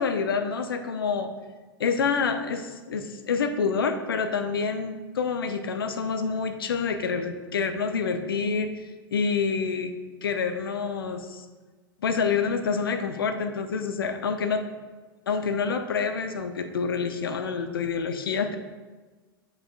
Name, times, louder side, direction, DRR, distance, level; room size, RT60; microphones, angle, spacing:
voice 1, 0.0-1.3 1.8-8.7 9.1-9.9 10.2-11.4 12.0-14.6 15.3-18.6, left 5 dB, 75° left, 8 dB, 0.6 m, -27 dB
7.9 x 5.5 x 2.5 m, 1.3 s
figure-of-eight pair, 90°, 12 cm